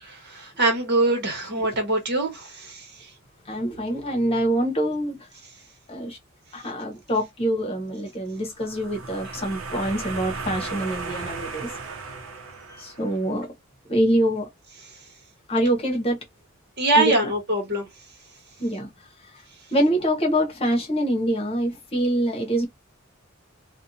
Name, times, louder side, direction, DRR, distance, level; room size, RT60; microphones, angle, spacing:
voice 1, 0.3-2.8 16.8-17.9, right 2 dB, 55° right, 1.2 m, -23 dB
voice 2, 3.5-5.2 5.9-6.2 6.5-11.7 12.8-13.5 13.9-14.5 15.5-16.2 17.0-17.1 18.6-18.9 19.7-22.7, equal, 30° left, 0.9 m, -25 dB
sound 1, 8.5-13.2, right 4 dB, 75° right, 0.7 m, -35 dB
2.5 x 2.2 x 2.7 m
head